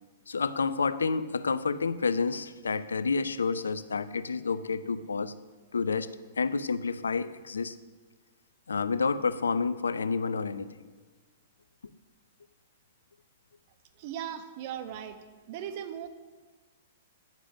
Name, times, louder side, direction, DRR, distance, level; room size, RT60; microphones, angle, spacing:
voice 1, 0.3-5.3 5.7-6.1 6.4-7.8 8.7-10.7, left 4 dB, 75° left, 15 dB, 0.7 m, -29 dB
voice 2, 14.0-15.2 15.5-16.1, right 9 dB, 45° right, 8 dB, 1.5 m, -38 dB
14.5 x 10.5 x 6.1 m, 1.4 s
figure-of-eight pair, 110°, 0 cm